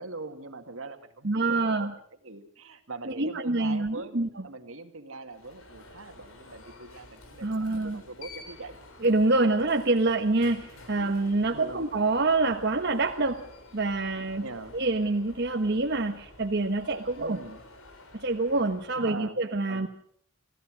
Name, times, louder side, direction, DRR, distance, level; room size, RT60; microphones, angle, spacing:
voice 1, 0.0-1.9 2.2-4.2 4.4-8.8 11.5-11.9 14.4-14.8 17.2-17.6 18.9-19.4 19.7-19.9, right 3 dB, 80° right, 7 dB, 2.1 m, -42 dB
voice 2, 1.2-1.9 3.1-4.3 7.4-8.0 9.0-13.4 13.7-14.5 14.7-17.4 18.1-19.9, right 2 dB, 50° right, 4 dB, 1.2 m, -26 dB
Alarm, 5.3-19.2, left 2 dB, 85° left, 4.5 m, -50 dB
26.0 x 17.0 x 6.3 m, 0.62 s
head